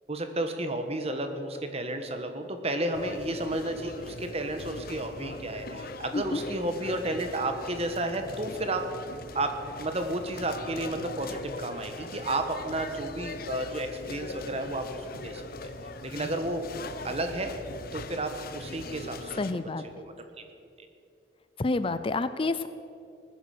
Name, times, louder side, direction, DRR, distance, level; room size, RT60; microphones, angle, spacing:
voice 1, 0.1-8.8 9.3-9.5 9.8-15.4 16.0-17.5 17.9-19.4 19.9-20.5, right 1 dB, 35° right, 7 dB, 1.4 m, -32 dB
sound 1, 2.9-19.5, left 3 dB, 55° left, 0.9 m, -41 dB
voice 2, 19.4-19.8 21.6-22.7, left 3 dB, 30° left, 13 dB, 0.4 m, -29 dB
19.0 x 10.0 x 6.6 m, 2.6 s
head